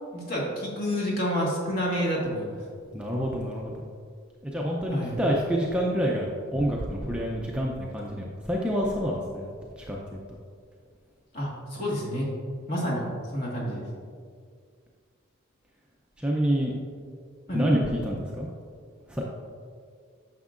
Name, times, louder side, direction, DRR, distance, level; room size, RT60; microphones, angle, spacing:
voice 1, 0.1-2.6 4.9-5.2 11.3-12.3 12.7-13.8 17.5-17.6, equal, 45° left, -4 dB, 1.6 m, -29 dB
voice 2, 2.9-3.8 4.4-9.5 9.8-10.2 16.2-16.7 17.5-18.5 19.1-19.2, equal, 5° right, -2 dB, 0.5 m, -27 dB
9.4 x 6.3 x 2.5 m, 2.1 s
head